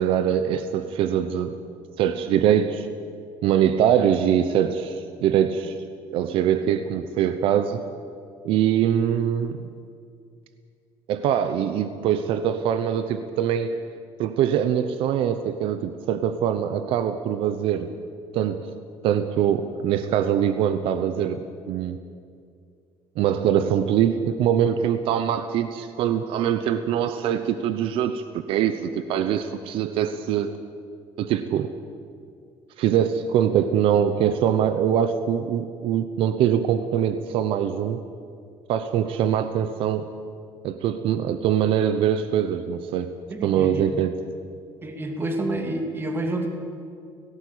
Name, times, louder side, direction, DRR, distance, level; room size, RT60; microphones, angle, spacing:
voice 1, 0.0-1.5 2.0-2.9 3.4-5.7 6.1-7.8 8.4-9.7 11.1-13.7 14.2-17.9 18.3-18.7 19.0-22.0 23.2-30.5 31.2-31.7 32.8-38.0 38.7-40.1 40.6-43.1 43.4-44.1, right 9 dB, 70° right, 10 dB, 1.0 m, -23 dB
voice 2, 43.3-43.8 44.8-46.5, right 1 dB, 25° right, 4 dB, 2.7 m, -28 dB
17.5 x 17.0 x 8.7 m, 2.3 s
cardioid pair, 130°, 9 cm